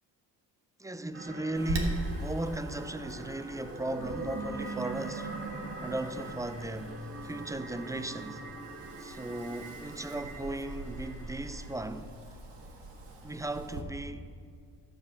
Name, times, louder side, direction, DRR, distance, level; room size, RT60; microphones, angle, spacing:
voice 1, 0.8-5.3 5.8-8.4 9.0-12.1 13.2-14.2, right 1 dB, 10° right, 0.4 m, -36 dB
sound 1, 1.1-11.7, right 2 dB, 30° right, 1.9 m, -42 dB
Wind, 1.5-13.8, right 2 dB, 70° right, 1.6 m, -42 dB
13.0 x 4.8 x 7.1 m
supercardioid pair, 70°, 44 cm